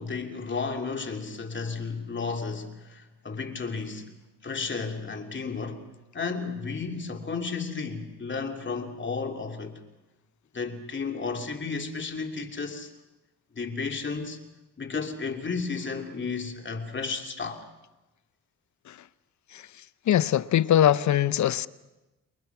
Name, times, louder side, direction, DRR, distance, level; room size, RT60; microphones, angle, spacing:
voice 1, 0.0-4.2 4.4-5.8 6.1-9.8 10.5-12.9 13.5-14.4 14.8-17.7, left 4 dB, 35° left, 2.8 m, -33 dB
voice 2, 20.1-21.7, left 11 dB, 60° left, 0.8 m, -22 dB
29.0 x 22.5 x 6.0 m
cardioid pair, 80°, 33 cm